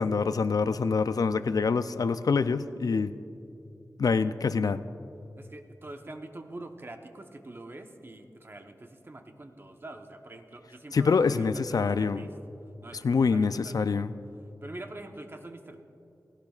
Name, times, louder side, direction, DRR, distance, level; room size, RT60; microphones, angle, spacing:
voice 1, 0.0-3.2 4.0-4.8 10.9-12.3 13.0-14.1, left 5 dB, 65° left, 12 dB, 0.4 m, -25 dB
voice 2, 5.4-12.3 12.8-14.0 14.6-15.8, right 2 dB, 35° right, 5 dB, 0.9 m, -45 dB
18.5 x 16.0 x 2.4 m, 2.8 s
wide cardioid pair, 75°, 7 cm